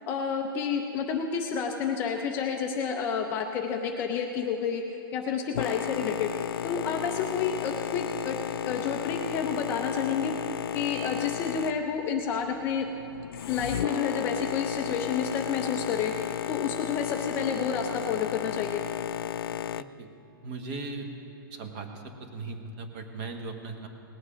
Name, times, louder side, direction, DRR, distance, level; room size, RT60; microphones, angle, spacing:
voice 1, 0.1-4.8 5.1-6.3 6.6-8.4 8.6-10.3 10.7-12.9 13.5-16.1 16.5-18.8, left 6 dB, 15° left, 3 dB, 0.5 m, -30 dB
Boat Water vehicle, 5.5-19.8, left 10 dB, 75° left, 0.4 m, -34 dB
voice 2, 19.8-20.1 20.4-21.1 21.5-21.9 22.3-23.9, right 3 dB, 30° right, 5 dB, 1.1 m, -38 dB
19.0 x 8.0 x 5.1 m, 2.9 s
hypercardioid pair, 170°, 12 cm